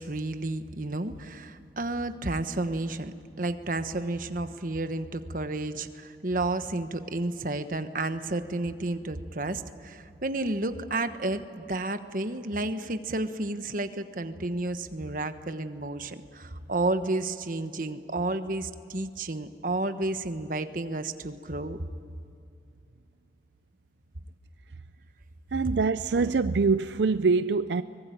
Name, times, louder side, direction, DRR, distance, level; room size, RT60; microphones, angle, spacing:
voice 1, 0.0-21.8 25.6-25.7, right 2 dB, 50° right, 1.2 m, -31 dB
voice 2, 25.5-27.8, right 4 dB, 80° right, 0.5 m, -24 dB
24.0 x 20.5 x 9.2 m
head